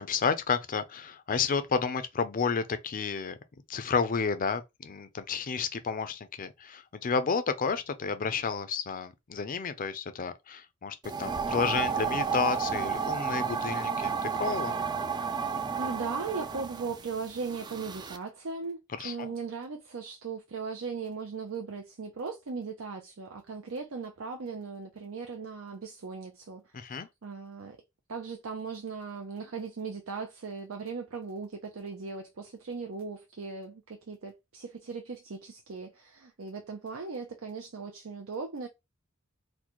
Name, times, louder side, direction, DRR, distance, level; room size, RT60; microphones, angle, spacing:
voice 1, 0.0-3.4 3.7-14.7 19.0-19.3 26.7-27.1, left 5 dB, 40° left, 0.5 m, -31 dB
sound 1, 11.0-18.2, right 6 dB, 20° right, 0.3 m, -32 dB
voice 2, 15.5-27.8 28.1-38.7, right 4 dB, 80° right, 0.6 m, -38 dB
3.9 x 2.2 x 3.0 m
head